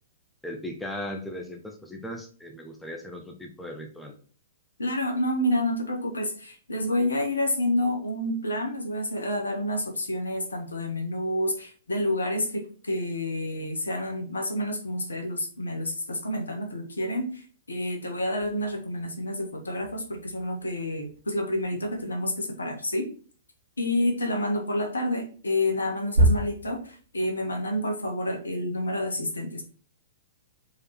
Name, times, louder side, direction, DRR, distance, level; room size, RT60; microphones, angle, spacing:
voice 1, 0.4-4.2, left 1 dB, 5° left, 2 dB, 1.1 m, -37 dB
voice 2, 4.8-23.1 23.8-29.6, left 1 dB, 80° left, 3 dB, 1.6 m, -29 dB
sound 1, 18.4-28.5, right 1 dB, 65° right, 1.4 m, -32 dB
4.8 x 4.8 x 4.3 m, 0.41 s
figure-of-eight pair, 110°, 0 cm